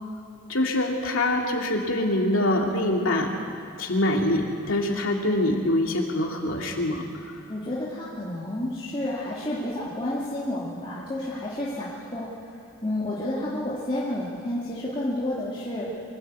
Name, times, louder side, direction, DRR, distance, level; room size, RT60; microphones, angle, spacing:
voice 1, 0.5-3.3 3.8-7.0, left 1 dB, 70° left, 0 dB, 2.7 m, -24 dB
voice 2, 7.5-12.5 12.8-15.9, left 1 dB, 25° left, -7 dB, 2.4 m, -30 dB
24.0 x 14.5 x 8.4 m, 2.5 s
head